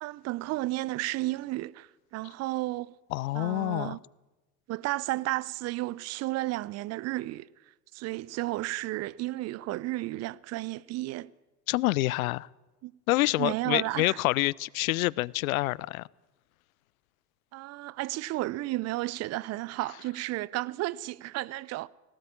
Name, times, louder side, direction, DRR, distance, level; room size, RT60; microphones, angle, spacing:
voice 1, 0.0-2.9 3.3-4.0 4.7-7.5 7.9-11.3 12.8-12.9 13.2-14.2 17.5-21.9, right 18 dB, 30° right, 0.7 m, -33 dB
voice 2, 3.1-4.0 11.7-12.5 13.1-16.1, left 19 dB, 60° left, 0.7 m, -27 dB
19.5 x 17.0 x 8.8 m
figure-of-eight pair, 85°, 49 cm